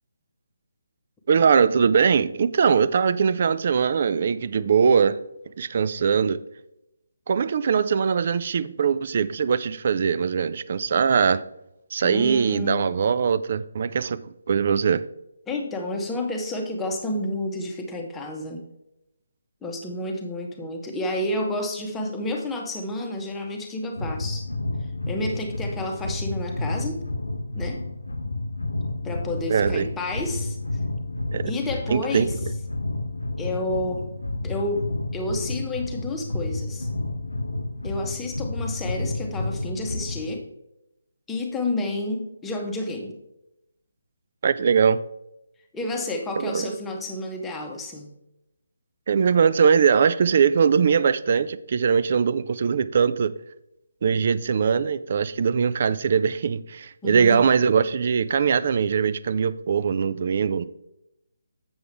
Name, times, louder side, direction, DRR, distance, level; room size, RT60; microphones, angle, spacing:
voice 1, 1.3-5.2 5.6-6.4 7.3-11.4 11.9-14.2 14.5-15.0 29.5-29.9 31.3-31.5 31.9-32.3 44.4-45.0 46.4-46.7 49.1-53.3 54.0-60.6, right 6 dB, 40° right, 15 dB, 0.4 m, -21 dB
voice 2, 12.0-12.9 15.5-18.6 19.6-24.5 25.1-27.0 27.5-27.8 29.0-30.6 31.5-32.3 33.4-34.1 34.4-36.9 37.8-40.5 41.3-43.2 45.7-48.1 57.0-57.5, left 1 dB, 5° left, 1 dB, 1.0 m, -30 dB
sound 1, 24.0-40.4, left 2 dB, 75° left, 0.7 m, -30 dB
7.8 x 7.1 x 3.4 m, 0.88 s
figure-of-eight pair, 145°, 0 cm